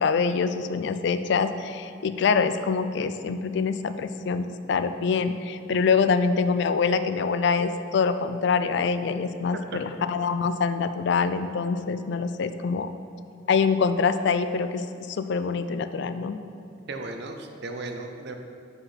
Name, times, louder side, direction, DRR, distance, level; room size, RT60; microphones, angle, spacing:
voice 1, 0.0-12.9 13.5-16.4, left 5 dB, 65° left, 11 dB, 0.4 m, -25 dB
voice 2, 16.9-18.4, right 2 dB, 60° right, 5 dB, 0.7 m, -35 dB
5.9 x 5.6 x 5.7 m, 2.5 s
head